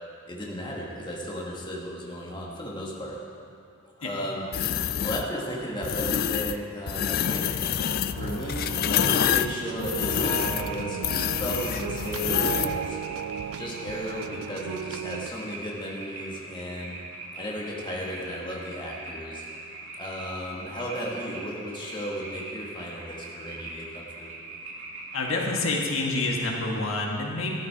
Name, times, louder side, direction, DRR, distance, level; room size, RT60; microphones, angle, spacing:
voice 1, 0.3-3.2 4.0-4.5 5.0-7.5 8.2-13.0 13.6-17.0 17.3-19.4 20.0-24.3, equal, 20° left, -3 dB, 1.4 m, -35 dB
sound 1, 4.5-5.3 5.8-6.6 6.9-12.8, left 9 dB, 45° left, 0.3 m, -27 dB
sound 2, 8.2-15.3, right 8 dB, 80° right, 0.3 m, -35 dB
sound 3, 9.9-25.6, right 3 dB, 60° right, 1.9 m, -42 dB
voice 2, 25.1-27.5, left 2 dB, 70° left, -1 dB, 1.6 m, -27 dB
13.0 x 12.0 x 4.6 m, 2.5 s
head